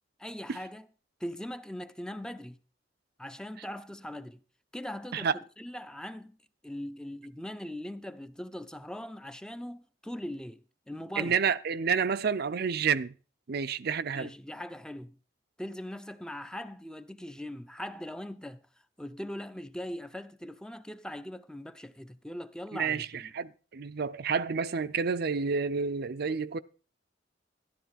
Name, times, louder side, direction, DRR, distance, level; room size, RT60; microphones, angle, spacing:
voice 1, 0.2-0.9 1.2-2.6 3.2-4.4 4.7-5.3 5.6-6.4 6.6-10.6 10.9-11.3 14.1-15.2 15.6-23.3, left 1 dB, 5° left, 0.5 m, -40 dB
voice 2, 11.2-13.1 13.5-14.3 22.8-23.1 23.3-26.6, right 6 dB, 60° right, 0.5 m, -29 dB
12.5 x 11.0 x 4.1 m
head